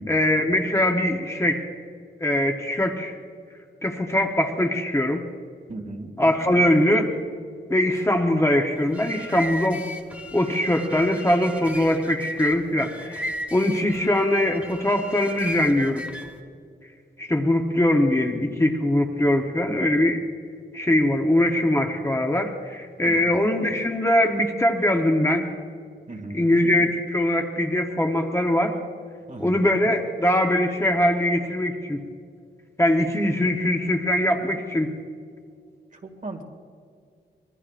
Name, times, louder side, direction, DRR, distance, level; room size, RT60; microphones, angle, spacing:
voice 1, 0.0-1.6 2.2-3.2 3.8-5.2 6.2-7.1 7.7-9.8 10.3-16.0 17.2-20.2 20.7-25.5 26.3-28.8 29.4-32.0 32.8-34.9, left 1 dB, 15° left, 3 dB, 0.9 m, -22 dB
voice 2, 5.7-6.1 23.0-23.3 26.1-26.5 29.3-29.6 36.2-36.4, right 2 dB, 45° right, 3 dB, 2.0 m, -36 dB
sound 1, 8.8-16.4, equal, 5° right, 1.4 m, -36 dB
25.5 x 21.5 x 2.5 m, 2.2 s
wide cardioid pair, 170°, 19 cm